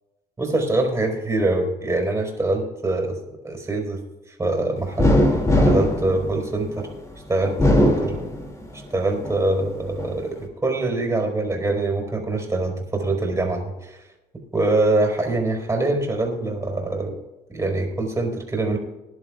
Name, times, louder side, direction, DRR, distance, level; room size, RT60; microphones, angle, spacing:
voice 1, 0.4-3.2 3.4-4.0 4.4-5.2 5.6-6.9 7.3-8.2 8.9-14.0 14.5-17.2 17.5-18.8, right 2 dB, 15° right, 2 dB, 4.1 m, -24 dB
sound 1, 5.0-6.9 7.4-8.8 9.2-10.1, left 1 dB, 20° left, 2.4 m, -20 dB
20.5 x 11.0 x 2.4 m, 1.0 s
cardioid pair, 110°, 17 cm